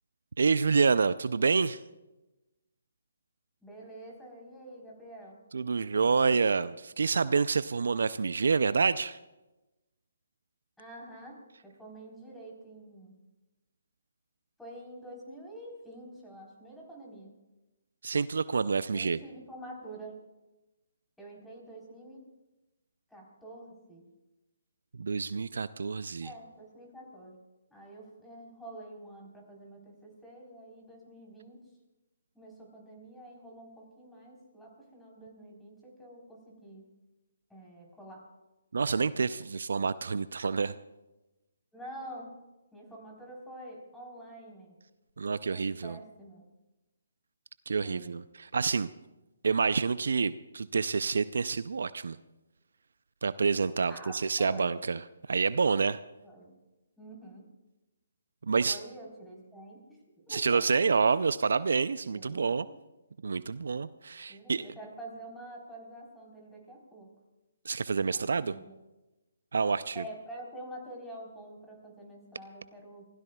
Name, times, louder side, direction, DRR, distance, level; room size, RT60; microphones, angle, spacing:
voice 1, 0.4-1.8 5.5-9.2 18.0-19.2 25.0-26.3 38.7-40.7 45.2-46.0 47.7-48.9 49.4-52.2 53.2-55.0 55.3-56.0 58.4-58.8 60.3-62.7 63.2-64.6 67.7-68.5 69.5-70.0, right 5 dB, 70° right, 16 dB, 0.4 m, -28 dB
voice 2, 3.6-5.4 10.8-13.1 14.6-17.3 18.9-20.2 21.2-22.2 23.1-24.0 26.2-27.4 27.7-31.6 32.3-36.8 37.5-38.2 41.7-42.3 42.7-44.7 45.5-46.4 47.8-48.1 53.9-54.8 56.2-56.5 57.0-57.5 58.7-60.0 60.3-60.8 62.0-62.8 64.3-67.1 68.1-68.8 69.9-73.1, right 1 dB, 5° left, -3 dB, 3.9 m, -47 dB
27.5 x 16.0 x 2.3 m, 1.0 s
figure-of-eight pair, 145°, 0 cm